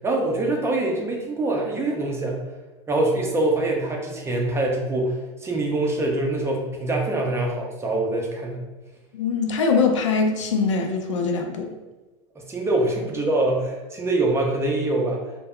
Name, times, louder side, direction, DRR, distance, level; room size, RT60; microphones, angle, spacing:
voice 1, 0.0-2.4 2.9-8.6 12.4-15.2, right 2 dB, 15° right, -1 dB, 0.5 m, -24 dB
voice 2, 9.1-11.7, left 4 dB, 90° left, 4 dB, 0.4 m, -22 dB
2.1 x 2.0 x 3.6 m, 1.2 s
hypercardioid pair, 105°, 15 cm